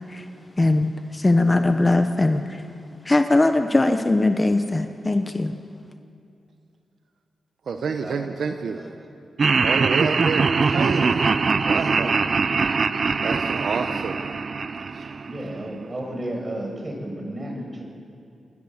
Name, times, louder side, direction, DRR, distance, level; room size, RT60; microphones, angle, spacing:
voice 1, 0.6-2.6 3.0-5.5, left 2 dB, 25° left, 7 dB, 1.0 m, -20 dB
voice 2, 7.7-8.9 9.6-11.3 11.7-12.2 13.2-14.2 14.9-15.2, right 5 dB, 70° right, 6 dB, 1.1 m, -28 dB
Laughter, 9.4-15.6, right 4 dB, 50° right, 0.6 m, -22 dB
voice 3, 15.2-17.8, right 1 dB, 30° right, 1 dB, 6.4 m, -32 dB
27.0 x 19.5 x 7.4 m, 2.6 s
cardioid pair, 90°, 0 cm